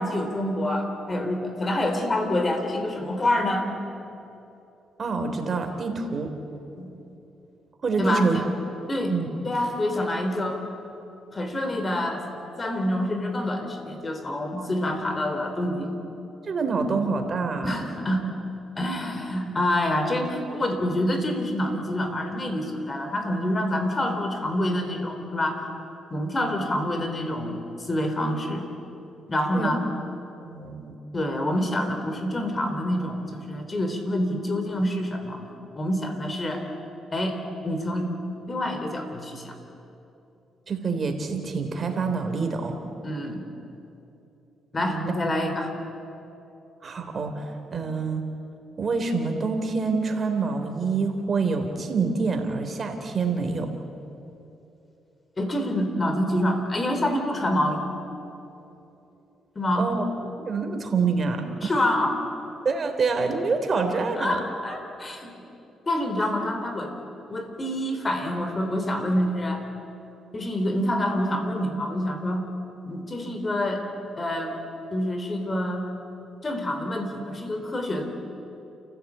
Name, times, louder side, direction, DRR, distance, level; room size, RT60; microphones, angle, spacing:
voice 1, 0.0-3.7 6.8-6.9 8.0-8.5 8.9-9.2 9.4-10.6 11.3-12.3 12.6-16.0 17.6-18.2 18.8-25.6 26.1-28.7 29.3-29.9 31.1-35.4 35.8-36.7 37.1-37.4 37.6-38.1 38.5-39.6 43.0-43.4 44.7-45.7 55.4-58.0 59.6-59.9 61.6-62.2 64.2-65.3 65.9-66.9 67.3-69.6 70.3-72.4 72.9-73.8 74.2-74.6 74.9-75.8 76.4-78.0, left 1 dB, 30° left, 5 dB, 3.8 m, -27 dB
voice 2, 5.0-6.3 7.8-8.4 9.1-9.3 14.6-14.7 16.5-17.8 29.5-29.7 30.4-31.0 40.7-42.8 44.8-45.1 46.8-48.2 48.8-53.7 59.8-60.0 60.4-61.7 62.6-64.4, right 4 dB, 40° right, 5 dB, 3.5 m, -26 dB
29.0 x 15.5 x 8.8 m, 2.9 s
cardioid pair, 90°, 0 cm